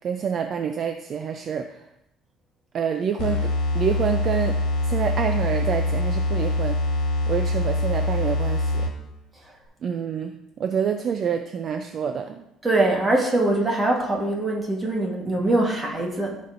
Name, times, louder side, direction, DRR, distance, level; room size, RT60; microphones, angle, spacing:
voice 1, 0.0-1.8 2.7-4.6 4.9-6.8 7.3-8.9 9.8-12.5, right 7 dB, 35° right, 6 dB, 0.4 m, -27 dB
sound 1, 3.2-9.1, left 1 dB, 70° left, 1.8 m, -24 dB
voice 2, 12.6-16.4, right 2 dB, 15° right, -1 dB, 1.3 m, -23 dB
15.0 x 5.2 x 2.6 m, 0.85 s
cardioid pair, 175°, 0 cm